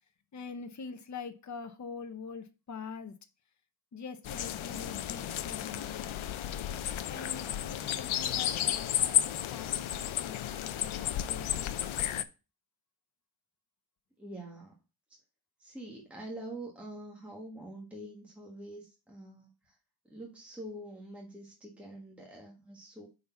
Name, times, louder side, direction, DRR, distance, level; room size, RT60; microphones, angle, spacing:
voice 1, 0.3-3.1 3.9-6.2 7.1-11.8, left 5 dB, 35° left, 7 dB, 0.8 m, -44 dB
sound 1, 4.2-12.2, left 11 dB, 90° left, 0.6 m, -33 dB
voice 2, 14.2-14.7 15.6-19.8 20.1-23.1, right 1 dB, 5° right, -2 dB, 1.4 m, -45 dB
5.4 x 4.1 x 5.6 m, 0.30 s
wide cardioid pair, 115°, 47 cm